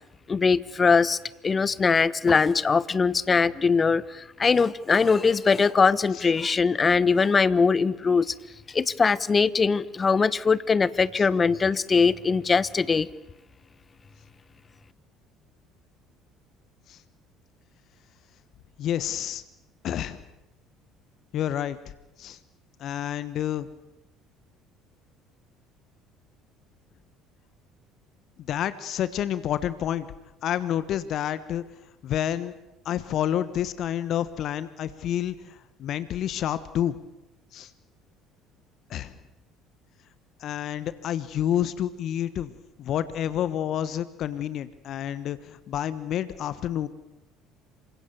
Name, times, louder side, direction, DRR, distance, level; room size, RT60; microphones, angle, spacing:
voice 1, 0.3-1.2 1.4-4.0 4.4-8.2 8.7-13.1, left 5 dB, 30° left, 18 dB, 1.1 m, -21 dB
voice 2, 18.8-19.4 19.8-20.2 21.3-21.8 22.2-22.4 22.8-23.7 28.4-30.1 30.4-31.6 32.0-32.5 32.8-37.0 37.5-37.7 38.9-39.2 40.4-46.9, left 10 dB, 55° left, 14 dB, 1.2 m, -29 dB
27.5 x 25.5 x 7.0 m, 0.93 s
figure-of-eight pair, 60°, 0 cm